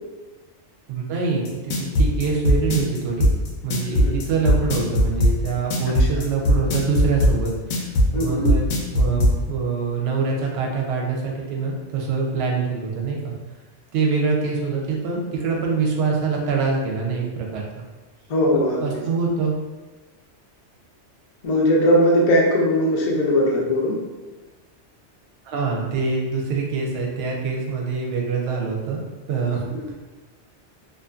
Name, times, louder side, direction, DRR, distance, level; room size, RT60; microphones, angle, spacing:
voice 1, 0.9-3.3 3.6-8.7 8.9-13.3 13.9-17.8 18.5-19.5 25.4-29.0 29.3-29.6, right 4 dB, 65° right, -1 dB, 0.8 m, -25 dB
sound 1, 1.4-9.3, equal, 80° left, 0.9 m, -18 dB
voice 2, 8.1-8.5 18.3-19.0 21.4-24.0 29.7-29.8, equal, 50° left, -2 dB, 0.4 m, -19 dB
2.5 x 2.4 x 2.4 m, 1.2 s
omnidirectional pair, 1.2 m